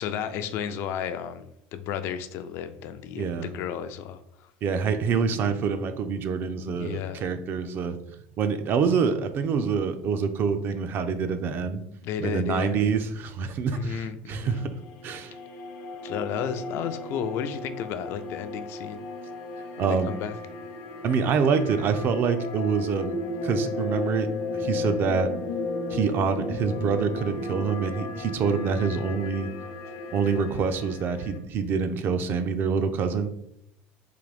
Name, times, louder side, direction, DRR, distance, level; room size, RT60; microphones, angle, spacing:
voice 1, 0.0-1.5 1.7-4.5 6.8-7.2 12.0-12.7 13.7-14.6 16.0-19.0 19.8-20.4, left 8 dB, 55° left, 10 dB, 0.4 m, -33 dB
voice 2, 3.2-3.5 4.6-8.0 8.4-11.8 12.2-14.7 15.0-15.3 19.8-20.1 21.0-25.3 25.9-29.5 30.1-33.3, right 6 dB, 45° right, 9 dB, 0.4 m, -26 dB
sound 1, 14.5-31.4, left 2 dB, 85° left, 0.8 m, -34 dB
3.8 x 2.6 x 3.4 m, 0.78 s
supercardioid pair, 120°, 5 cm